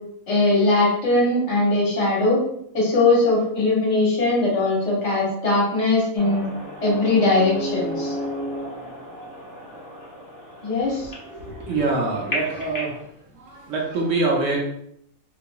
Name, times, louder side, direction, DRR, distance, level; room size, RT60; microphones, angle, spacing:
voice 1, 0.3-2.4 2.7-6.4 6.8-8.1 10.6-11.1, left 2 dB, 55° left, -5 dB, 1.2 m, -20 dB
sound 1, 6.2-13.0, equal, 25° left, 0.4 m, -33 dB
voice 2, 11.3-12.9 13.3-14.6, right 3 dB, 65° right, -2 dB, 1.0 m, -25 dB
2.9 x 2.7 x 2.3 m, 0.73 s
omnidirectional pair, 1.5 m